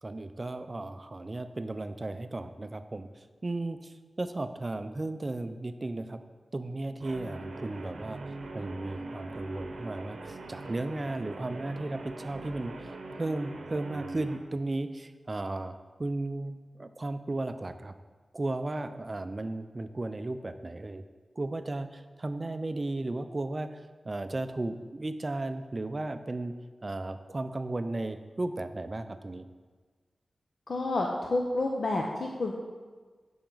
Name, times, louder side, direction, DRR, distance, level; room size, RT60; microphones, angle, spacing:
voice 1, 0.0-3.1 3.4-6.2 6.5-8.2 8.5-17.9 18.3-21.0 21.4-26.5 26.8-29.5, right 2 dB, 30° right, 10 dB, 0.4 m, -35 dB
Guitar, 7.0-14.4, right 2 dB, 80° right, 0.8 m, -42 dB
voice 2, 30.7-32.5, left 2 dB, 60° left, 0 dB, 0.6 m, -29 dB
8.6 x 5.9 x 3.9 m, 1.4 s
wide cardioid pair, 105°, 0 cm